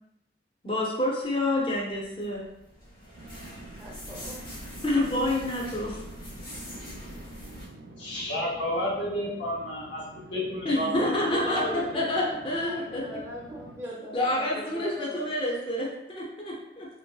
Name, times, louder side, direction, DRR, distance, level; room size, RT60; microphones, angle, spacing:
voice 1, 0.6-2.4 4.8-6.0 10.6-13.0 14.1-16.9, left 1 dB, 30° left, -3 dB, 0.6 m, -28 dB
sound 1, 1.7-7.7, equal, 50° left, 1.0 m, -43 dB
sound 2, 3.2-13.8, right 2 dB, 75° right, 0.4 m, -48 dB
voice 2, 3.8-4.4 11.4-15.4, right 1 dB, 15° right, -4 dB, 0.6 m, -41 dB
voice 3, 8.0-10.9 11.4-11.8, left 1 dB, 80° left, -4 dB, 0.8 m, -31 dB
3.0 x 2.6 x 2.3 m, 0.87 s
head